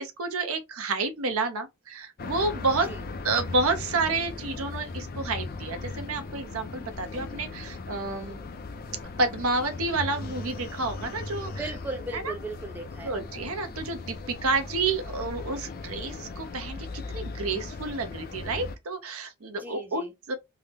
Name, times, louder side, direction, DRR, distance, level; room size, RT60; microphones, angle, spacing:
voice 1, 0.0-2.9 3.2-8.4 9.2-11.5 12.1-12.3 13.0-20.4, right 3 dB, 70° right, 0.7 m, -30 dB
sound 1, 2.2-18.8, left 3 dB, 45° left, 0.4 m, -38 dB
voice 2, 11.5-13.2 19.6-20.1, right 2 dB, 10° right, 0.6 m, -37 dB
3.7 x 2.1 x 3.3 m
head